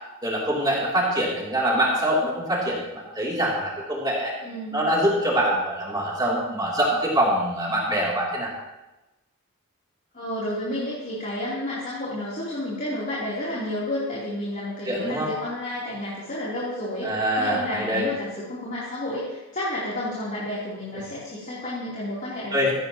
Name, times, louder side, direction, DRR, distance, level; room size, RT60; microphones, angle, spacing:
voice 1, 0.2-4.3 4.7-8.5 14.9-15.3 17.0-18.1 22.5-22.7, right 1 dB, 20° right, -4 dB, 3.2 m, -24 dB
voice 2, 4.4-4.9 10.1-22.7, left 1 dB, 35° left, -8 dB, 3.6 m, -31 dB
17.0 x 15.0 x 3.1 m, 1.0 s
head